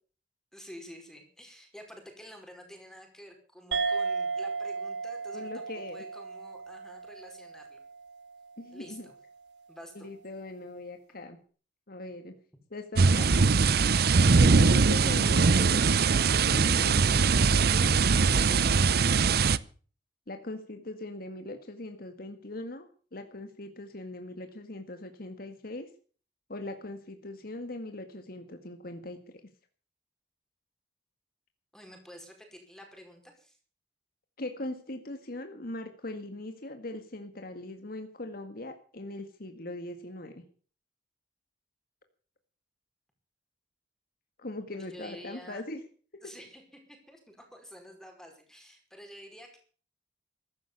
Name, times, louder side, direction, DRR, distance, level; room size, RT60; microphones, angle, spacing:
voice 1, 0.5-5.6 5.9-7.8 8.7-9.2 9.7-10.1 31.7-33.6 44.7-45.6 46.2-49.6, equal, 5° left, 3 dB, 5.0 m, -49 dB
sound 1, 3.7-8.6, right 4 dB, 85° right, 2.0 m, -35 dB
voice 2, 5.3-6.0 8.6-9.1 10.0-11.4 11.9-12.3 12.7-13.5 14.4-19.1 20.3-25.9 26.5-29.4 34.4-40.4 44.4-45.8 46.2-46.3, left 2 dB, 55° left, 6 dB, 2.0 m, -40 dB
sound 2, 13.0-19.6, right 4 dB, 60° right, 0.7 m, -22 dB
15.5 x 12.0 x 7.0 m, 0.42 s
head